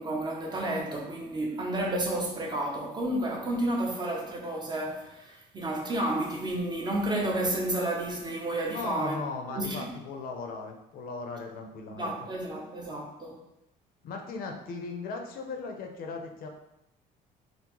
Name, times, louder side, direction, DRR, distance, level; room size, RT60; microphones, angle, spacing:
voice 1, 0.0-9.2 9.5-10.0 11.9-13.4, right 1 dB, 25° right, 0 dB, 0.6 m, -31 dB
voice 2, 8.6-12.1 14.0-16.5, left 4 dB, 60° left, 3 dB, 0.5 m, -37 dB
3.8 x 2.0 x 2.9 m, 0.85 s
cardioid pair, 110°, 17 cm